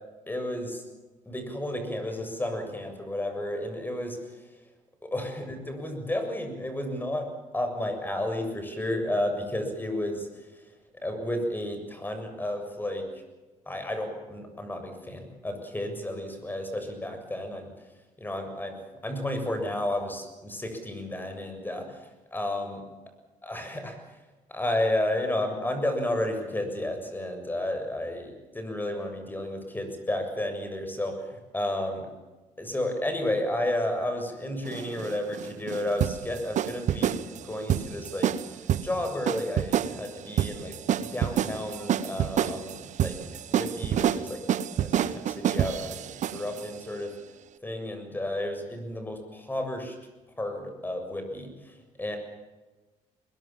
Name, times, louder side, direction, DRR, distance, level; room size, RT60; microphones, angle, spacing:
voice 1, 0.3-0.8 1.3-4.2 5.0-10.3 11.0-13.1 13.7-17.7 18.2-22.0 22.3-22.8 23.4-24.0 24.5-32.0 32.6-38.3 38.8-43.2 43.5-44.4 44.8-46.1 46.3-47.1 47.6-50.0 50.4-52.2, left 1 dB, 15° left, 6 dB, 7.1 m, -32 dB
sound 1, 34.6-46.7, right 10 dB, 65° right, 1.2 m, -28 dB
22.0 x 22.0 x 7.4 m, 1.1 s
cardioid pair, 90°, 13 cm